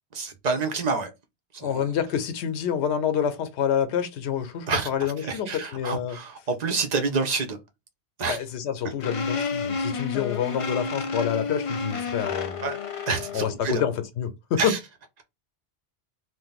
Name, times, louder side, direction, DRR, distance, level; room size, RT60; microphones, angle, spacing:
voice 1, 0.1-1.1 1.5-1.8 4.7-4.9 5.2-7.6 8.2-8.4 12.6-12.8 13.1-13.8 14.6-14.8, right 4 dB, 50° right, 0.6 m, -28 dB
voice 2, 1.6-6.2 8.3-12.6 13.3-14.7, left 8 dB, 80° left, 0.9 m, -27 dB
sound 1, 9.0-13.6, left 4 dB, 45° left, 0.4 m, -30 dB
2.5 x 2.0 x 3.9 m
omnidirectional pair, 1.1 m